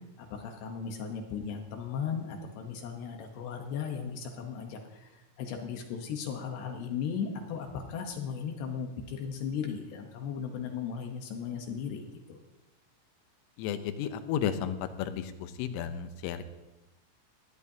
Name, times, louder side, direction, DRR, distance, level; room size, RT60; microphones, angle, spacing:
voice 1, 0.2-12.4, left 7 dB, 70° left, 3 dB, 2.7 m, -36 dB
voice 2, 13.6-16.4, left 9 dB, 85° left, 9 dB, 3.4 m, -33 dB
19.0 x 14.5 x 2.8 m, 1.0 s
omnidirectional pair, 5.7 m